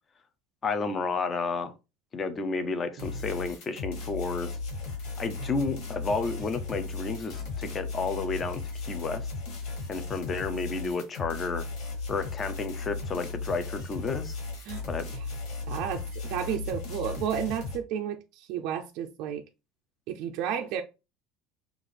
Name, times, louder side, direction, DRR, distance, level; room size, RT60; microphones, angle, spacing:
voice 1, 0.6-1.7 2.1-4.6 5.2-9.3 9.9-11.7 12.1-14.4 14.9-15.0, left 4 dB, 20° left, 0.6 m, -31 dB
sound 1, 3.0-17.8, left 3 dB, 65° left, 2.3 m, -36 dB
voice 2, 15.7-19.4 20.1-20.8, right 8 dB, 55° right, 0.4 m, -32 dB
5.9 x 2.5 x 3.3 m
cardioid pair, 170°, 0 cm